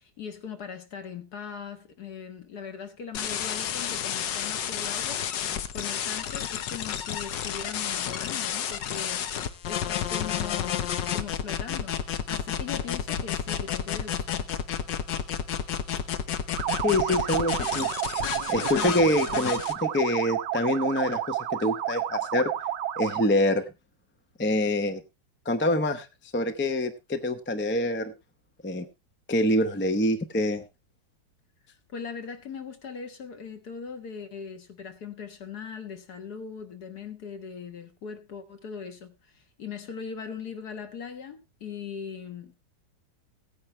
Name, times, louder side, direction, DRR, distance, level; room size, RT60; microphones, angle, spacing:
voice 1, 0.0-5.2 5.7-9.3 9.7-14.5 31.9-42.6, left 6 dB, 60° left, 1.8 m, -40 dB
sound 1, 3.1-19.7, left 9 dB, 80° left, 1.6 m, -31 dB
sound 2, 16.6-23.4, right 11 dB, 75° right, 1.4 m, -30 dB
voice 2, 16.8-17.9 18.5-22.5 23.0-23.6 24.4-25.0 25.4-26.1 26.3-28.1 28.6-28.9 29.3-30.6, left 1 dB, 15° left, 0.4 m, -25 dB
16.5 x 9.6 x 3.2 m
omnidirectional pair, 1.9 m